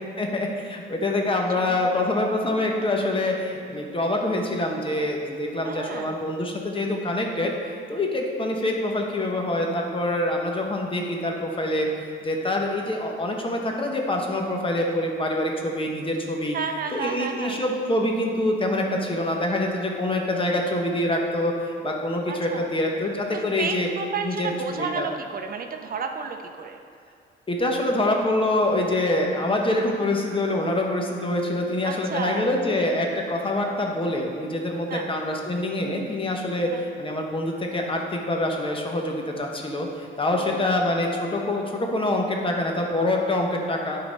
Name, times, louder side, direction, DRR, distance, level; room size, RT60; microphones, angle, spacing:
voice 1, 0.2-16.6 16.9-23.9 24.2-25.1 27.5-44.0, left 1 dB, 25° left, 1 dB, 1.1 m, -25 dB
voice 2, 1.5-2.0 5.6-6.1 16.5-17.6 20.1-20.5 22.3-22.7 23.3-26.8 31.8-32.5 34.9-35.1 36.7-36.8 40.4-41.1, right 5 dB, 45° right, 5 dB, 0.6 m, -32 dB
10.5 x 4.0 x 5.3 m, 2.3 s
cardioid pair, 90°, 20 cm